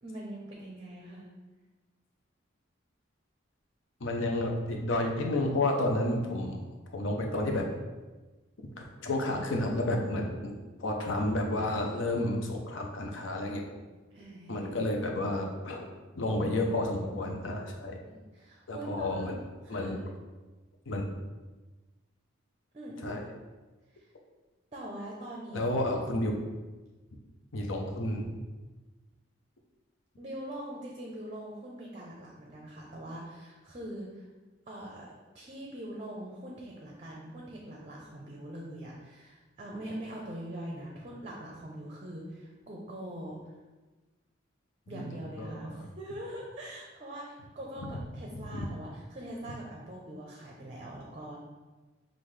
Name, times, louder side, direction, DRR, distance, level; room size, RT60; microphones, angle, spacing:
voice 1, 0.0-1.3 14.1-14.9 18.0-19.3 19.6-20.0 22.7-23.0 23.9-24.1 24.7-25.7 30.2-34.3 34.7-43.5 44.9-51.4, right 1 dB, 30° right, -2 dB, 0.5 m, -43 dB
voice 2, 4.0-6.6 6.9-7.7 8.8-10.5 10.8-13.6 14.5-15.9 16.1-18.0 18.7-19.4 19.7-20.0 20.9-21.1 23.0-23.3 25.5-26.3 27.5-28.3 44.9-45.1 45.4-45.8 48.5-48.7, left 1 dB, 75° left, 1 dB, 0.7 m, -31 dB
5.4 x 2.5 x 3.2 m, 1.2 s
head